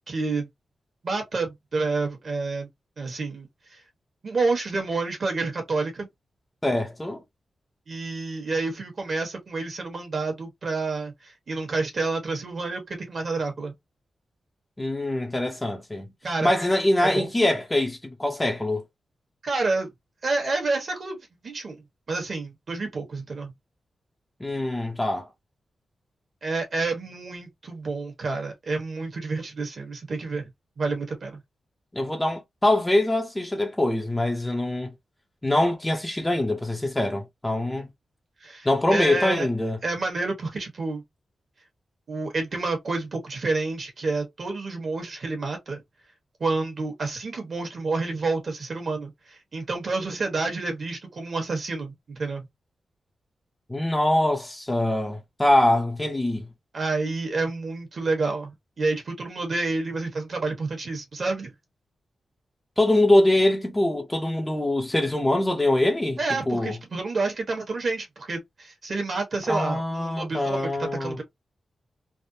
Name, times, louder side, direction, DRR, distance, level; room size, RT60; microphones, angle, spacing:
voice 1, 0.1-0.5 1.0-2.7 3.0-3.8 4.2-6.1 7.9-13.7 16.2-16.5 17.0-17.3 19.4-19.9 20.2-21.2 21.4-21.8 22.1-23.5 26.4-30.5 30.8-31.4 38.4-39.5 39.8-41.0 42.1-45.8 46.4-52.5 56.7-61.5 66.2-71.2, right 3 dB, 50° right, 1.3 m, -29 dB
voice 2, 6.6-7.2 14.8-16.1 16.4-18.8 24.4-25.3 31.9-34.9 35.4-37.9 38.6-39.8 53.7-56.5 62.8-66.8 69.5-71.2, left 1 dB, 15° left, 0.7 m, -23 dB
3.4 x 2.1 x 2.7 m
wide cardioid pair, 130°, 0 cm